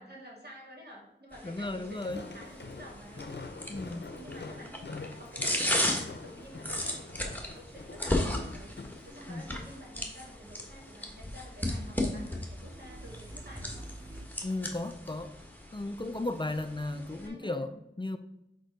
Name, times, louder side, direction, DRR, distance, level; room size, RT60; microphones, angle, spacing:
voice 1, 0.0-3.3 3.7-4.8 5.2-13.9 16.9-17.6, equal, 55° right, -3 dB, 2.3 m, -50 dB
sound 1, 1.3-17.3, left 1 dB, 10° left, 1.2 m, -36 dB
voice 2, 1.4-2.2 3.7-4.0 9.3-9.5 14.4-15.3 15.7-18.2, left 2 dB, 25° left, 8 dB, 0.4 m, -35 dB
Walk footsteps, 1.9-9.1, left 3 dB, 65° left, 0.6 m, -45 dB
sound 2, 7.3-10.3 10.7-14.3, right 1 dB, 20° right, 0.7 m, -51 dB
5.2 x 4.4 x 5.0 m, 0.82 s
wide cardioid pair, 40°, 19 cm